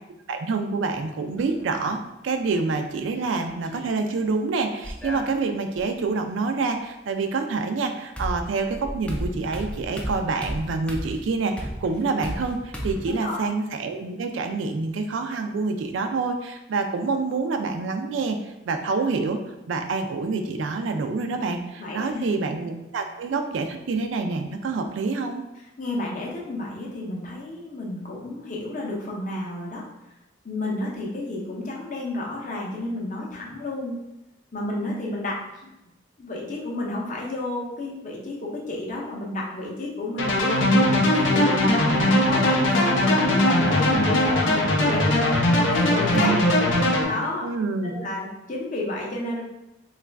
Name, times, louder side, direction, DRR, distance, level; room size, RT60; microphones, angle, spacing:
voice 1, 0.3-18.4 18.6-19.4 19.7-25.4 44.8-44.9 46.1-46.4 47.4-48.0, right 4 dB, 80° right, 6 dB, 0.4 m, -27 dB
sound 1, 1.4-2.0 3.3-3.9 4.8-5.9 7.6-7.7 8.2-13.1, equal, 5° left, 0.3 m, -34 dB
voice 2, 21.8-22.2 25.8-29.9 30.4-34.0 34.5-35.4 36.2-46.3 47.0-47.5 47.8-49.4, left 2 dB, 40° left, -3 dB, 0.7 m, -31 dB
sound 2, 40.2-47.0, left 1 dB, 85° left, 0.6 m, -20 dB
3.0 x 2.4 x 3.3 m, 0.93 s
head